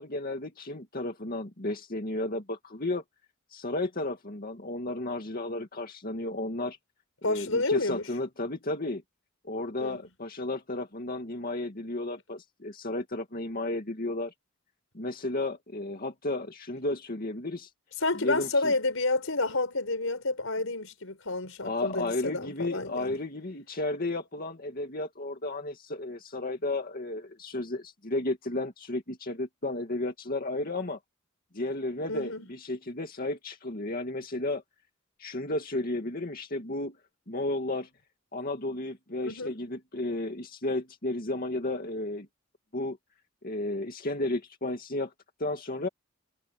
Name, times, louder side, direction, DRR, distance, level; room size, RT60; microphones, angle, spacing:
voice 1, 0.0-3.0 3.5-6.8 7.2-9.0 9.4-14.3 14.9-17.7 18.2-18.7 21.6-31.0 31.5-34.6 35.2-37.0 37.3-37.9 38.3-42.3 42.7-43.0 43.4-45.1 45.4-45.9, left 2 dB, 45° left, 2.3 m, -33 dB
voice 2, 7.2-8.1 9.8-10.0 18.0-23.2 32.1-32.5 39.2-39.5, left 2 dB, 80° left, 4.8 m, -30 dB
head